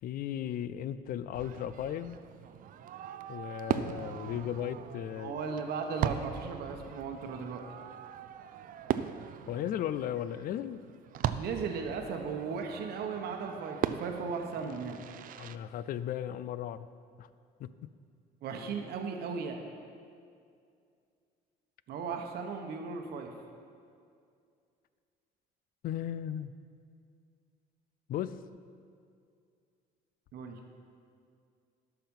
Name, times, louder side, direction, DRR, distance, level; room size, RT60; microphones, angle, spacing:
voice 1, 0.0-2.2 3.3-5.4 9.5-10.8 15.4-16.9 17.2-17.3 17.6-17.7 25.8-26.5 28.1-28.4, left 10 dB, 55° left, 15 dB, 0.4 m, -36 dB
Fireworks, 1.3-15.6, right 10 dB, 55° right, 0.4 m, -39 dB
voice 2, 5.2-7.6 11.4-15.0 18.4-19.6 21.9-23.3 30.3-30.6, right 5 dB, 70° right, 4 dB, 1.0 m, -36 dB
12.0 x 5.9 x 5.4 m, 2.3 s
cardioid pair, 110°, 17 cm